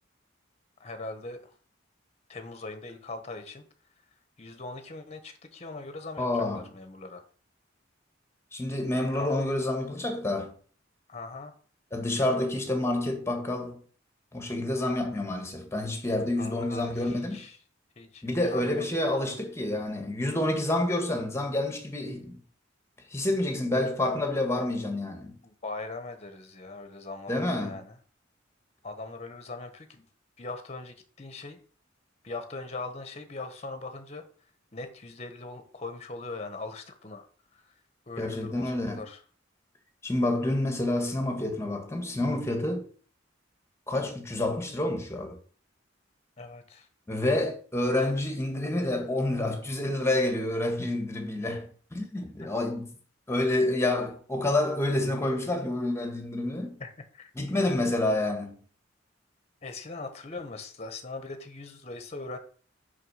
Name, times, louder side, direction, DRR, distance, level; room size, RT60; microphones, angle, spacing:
voice 1, 0.8-1.5 2.3-3.6 4.4-7.2 9.1-9.3 11.1-11.5 16.4-17.6 18.0-18.9 25.4-28.0 28.8-30.1 30.4-31.6 32.2-34.3 34.7-37.3 37.5-37.7 38.1-39.2 46.4-46.9 56.8-57.3 59.6-62.4, left 3 dB, 35° left, 1.3 m, -40 dB
voice 2, 6.2-6.7 8.5-10.5 11.9-13.8 14.3-17.5 18.2-22.4 23.1-25.4 27.3-27.8 38.2-39.0 40.0-42.9 43.9-45.4 47.1-52.9 53.3-56.8 57.4-58.6, left 1 dB, 15° left, 1.8 m, -28 dB
6.5 x 5.8 x 5.7 m
head